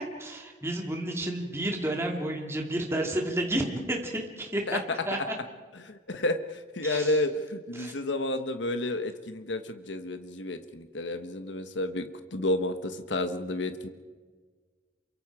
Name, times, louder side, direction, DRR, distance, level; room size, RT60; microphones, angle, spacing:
voice 1, 0.0-5.3 6.8-7.2 7.7-8.0, right 1 dB, 15° right, 1 dB, 2.6 m, -31 dB
voice 2, 5.8-13.9, left 1 dB, 85° left, 8 dB, 1.2 m, -31 dB
28.0 x 24.5 x 4.8 m, 1.5 s
head